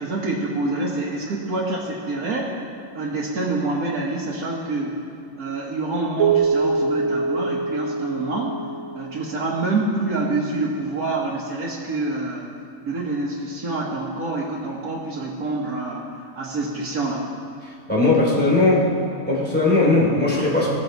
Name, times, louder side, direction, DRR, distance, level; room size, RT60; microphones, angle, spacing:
voice 1, 0.0-2.5 2.9-5.0 5.4-8.6 8.9-12.5 12.8-17.2, right 2 dB, 90° right, -6 dB, 1.8 m, -26 dB
Keyboard (musical), 6.2-9.2, right 4 dB, 60° right, 1.2 m, -23 dB
voice 2, 17.9-18.9 19.2-20.7, left 2 dB, 5° left, -6 dB, 3.3 m, -18 dB
18.5 x 7.1 x 4.5 m, 2.6 s
omnidirectional pair, 1.5 m